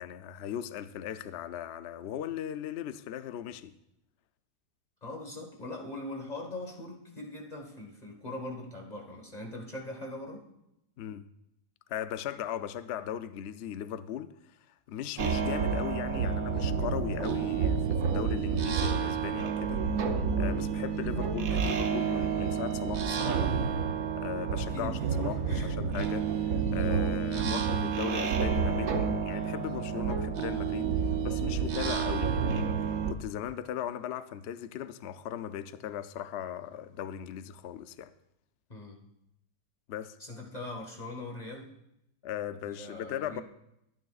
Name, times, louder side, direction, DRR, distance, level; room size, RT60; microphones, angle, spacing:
voice 1, 0.0-3.7 11.0-11.3 11.9-19.9 20.4-23.5 24.2-38.1 39.9-40.2 42.2-43.4, left 10 dB, 90° left, 0.5 m, -38 dB
voice 2, 5.0-10.4 16.2-16.4 24.6-25.7 27.3-27.7 38.7-39.0 40.2-41.7 42.7-43.4, left 1 dB, 25° left, 1.4 m, -41 dB
sound 1, 15.2-33.1, right 6 dB, 60° right, 1.2 m, -29 dB
23.0 x 9.3 x 2.4 m
omnidirectional pair, 1.8 m